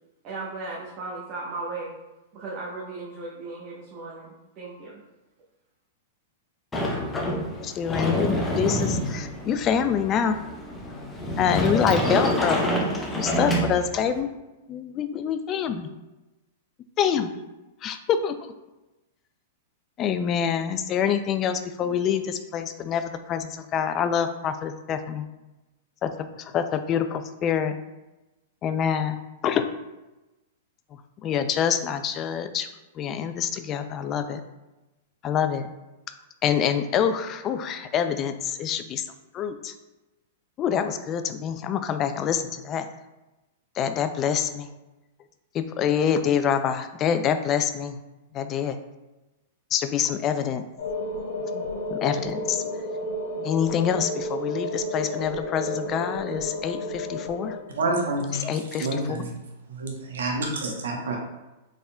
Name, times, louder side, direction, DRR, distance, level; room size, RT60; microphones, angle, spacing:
voice 1, 0.2-1.9 2.3-5.0, right 3 dB, 40° right, -5 dB, 0.8 m, -36 dB
Sliding door, 6.7-14.2, equal, 10° left, 0.7 m, -27 dB
voice 2, 7.6-10.4 11.4-12.7 13.2-14.3 14.7-15.9 17.0-17.3 17.8-18.4 20.0-25.3 26.0-26.1 26.4-27.8 28.6-29.7 31.2-32.7 33.0-34.4 35.2-35.7 36.4-39.0 39.3-39.7 40.6-42.9 43.8-44.7 45.5-48.0 48.3-48.8 49.7-50.6 51.9-52.6 53.4-57.6 58.3-59.3, left 8 dB, 30° left, 9 dB, 0.3 m, -26 dB
sound 1, 50.8-57.6, left 1 dB, 65° left, 1.0 m, -31 dB
voice 3, 57.8-58.4 58.8-59.3 59.7-61.2, right 2 dB, 80° right, 1 dB, 0.8 m, -28 dB
4.1 x 3.6 x 2.2 m, 1.0 s
hypercardioid pair, 125°, 0 cm